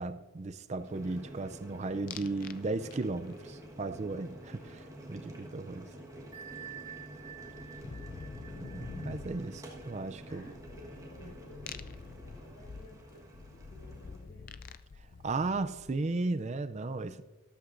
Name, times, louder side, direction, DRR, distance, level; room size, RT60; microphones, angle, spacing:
voice 1, 0.0-5.9 8.6-10.4 15.2-17.2, right 3 dB, 30° right, 0.4 m, -35 dB
Boiling, 0.8-14.3, right 1 dB, 15° right, 1.4 m, -49 dB
sound 1, 2.1-2.6 2.9-3.4 5.8-5.9 6.1-16.2, left 5 dB, 40° left, 0.3 m, -47 dB
Bell, 6.3-11.7, right 9 dB, 85° right, 1.9 m, -50 dB
voice 2, 7.6-8.3 10.3-13.2 13.5-14.5, left 2 dB, 65° left, 2.7 m, -55 dB
13.5 x 12.5 x 2.6 m
head